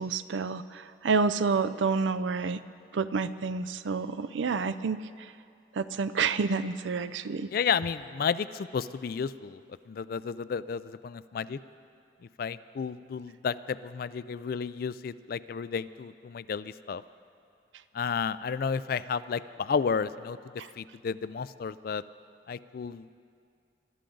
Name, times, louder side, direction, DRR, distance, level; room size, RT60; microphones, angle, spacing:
voice 1, 0.0-2.6 2.9-5.0 5.8-7.5 20.6-20.7, right 4 dB, 85° right, 14 dB, 0.5 m, -29 dB
voice 2, 7.5-9.6 9.9-11.6 12.4-17.0 17.9-20.4 20.8-22.0 22.5-23.1, left 6 dB, 55° left, 16 dB, 0.3 m, -32 dB
22.0 x 12.5 x 3.9 m, 2.4 s
head